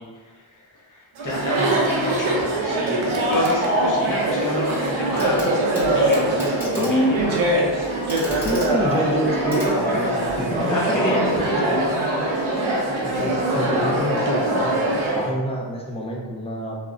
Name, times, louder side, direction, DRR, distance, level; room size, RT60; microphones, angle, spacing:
voice 1, 0.0-5.5 5.9-7.4 10.7-12.2, left 1 dB, 40° left, -4 dB, 0.7 m, -30 dB
Chatter, 1.2-15.3, right 1 dB, 90° right, 0.6 m, -22 dB
Clock, 5.2-5.5 5.7-10.4 11.7-11.8, equal, 5° right, 1.0 m, -35 dB
voice 2, 6.8-7.1 8.4-11.9 13.0-16.8, equal, 15° left, -2 dB, 0.4 m, -26 dB
2.4 x 2.0 x 3.5 m, 1.4 s
wide cardioid pair, 100°, 46 cm